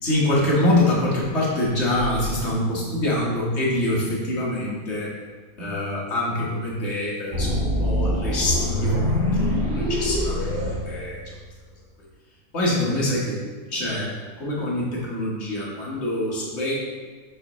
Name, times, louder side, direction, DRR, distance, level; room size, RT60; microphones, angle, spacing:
voice 1, 0.0-5.1 5.6-10.5 10.8-11.2 12.5-13.4 13.7-14.1 14.4-16.7, left 1 dB, 50° left, -5 dB, 1.6 m, -25 dB
sound 1, 7.3-11.6, left 1 dB, 50° right, 2.0 m, -24 dB
7.4 x 4.7 x 3.0 m, 1.4 s
omnidirectional pair, 1.6 m